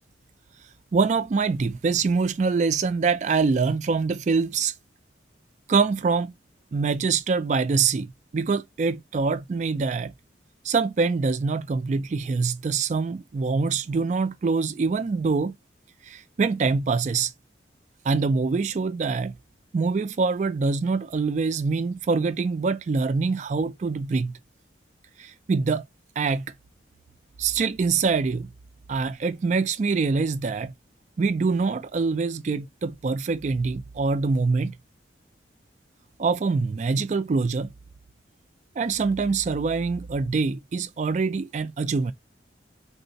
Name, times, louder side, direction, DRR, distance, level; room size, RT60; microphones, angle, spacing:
voice 1, 0.9-4.7 5.7-6.4 6.7-10.1 10.6-15.5 16.0-17.3 18.0-19.3 19.7-24.4 25.2-25.8 26.2-26.5 27.4-28.5 28.9-30.7 31.2-34.8 36.2-37.7 38.8-42.1, right 4 dB, 40° right, 0.3 m, -24 dB
3.8 x 2.1 x 2.6 m
head